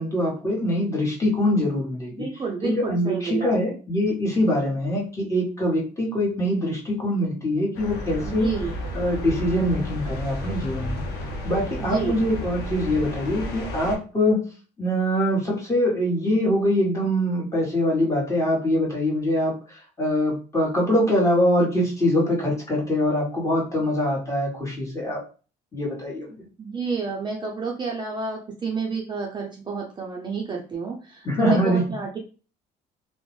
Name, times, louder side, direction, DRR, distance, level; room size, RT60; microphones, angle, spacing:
voice 1, 0.0-2.2 2.6-8.5 8.9-11.0 11.4-14.4 14.8-19.5 20.0-25.2 25.7-26.5 31.2-31.8, left 1 dB, 15° left, -3 dB, 1.2 m, -23 dB
voice 2, 2.1-3.8 8.2-8.8 11.8-12.2 26.6-32.2, right 5 dB, 25° right, 0 dB, 0.5 m, -30 dB
sound 1, 7.7-14.0, left 1 dB, 85° left, 0.6 m, -32 dB
2.6 x 2.1 x 3.0 m, 0.36 s
cardioid pair, 110°, 17 cm